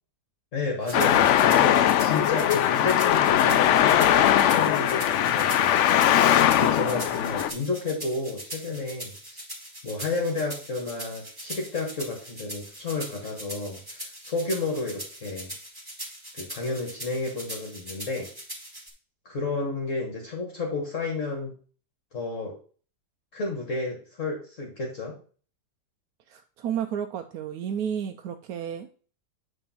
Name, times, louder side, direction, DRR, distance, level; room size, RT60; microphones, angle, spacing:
voice 1, 0.5-6.1 6.6-9.4 9.8-15.5 16.3-18.3 19.3-21.5 22.1-22.6 23.3-25.2, left 3 dB, 50° left, 0 dB, 1.7 m, -31 dB
Traffic noise roadway noise, 0.9-7.5, left 11 dB, 80° left, 0.6 m, -20 dB
sound 1, 0.9-18.9, right 1 dB, 15° right, 2.2 m, -41 dB
voice 2, 26.3-28.9, right 8 dB, 75° right, 6 dB, 1.0 m, -32 dB
8.5 x 3.6 x 5.6 m, 0.42 s
omnidirectional pair, 1.8 m